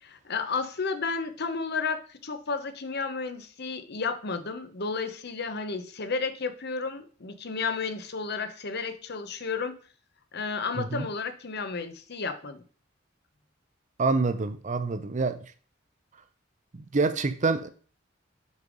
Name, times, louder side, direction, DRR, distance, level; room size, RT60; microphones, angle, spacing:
voice 1, 0.0-9.8 10.3-12.6, left 4 dB, 55° left, 0.9 m, -32 dB
voice 2, 14.0-15.4 16.9-17.7, right 3 dB, 40° right, 0.6 m, -26 dB
6.3 x 5.5 x 5.2 m
head